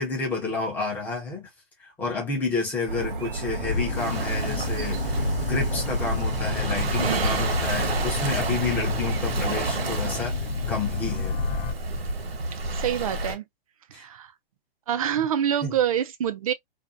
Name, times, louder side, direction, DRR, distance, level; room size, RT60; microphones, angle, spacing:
voice 1, 0.0-1.5 1.8-5.1 5.4-11.4 13.9-14.0 15.6-15.7, left 4 dB, 5° left, 0.7 m, -30 dB
sound 1, 2.9-10.1, right 4 dB, 60° right, 0.7 m, -32 dB
sound 2, 3.6-11.7, left 4 dB, 45° left, 0.6 m, -29 dB
Waves surf, 3.9-13.3, right 4 dB, 85° right, 1.2 m, -31 dB
voice 2, 7.0-7.5 12.7-13.4 13.9-14.3 14.9-16.5, right 9 dB, 40° right, 0.4 m, -26 dB
2.6 x 2.2 x 2.4 m
hypercardioid pair, 155°, 30 cm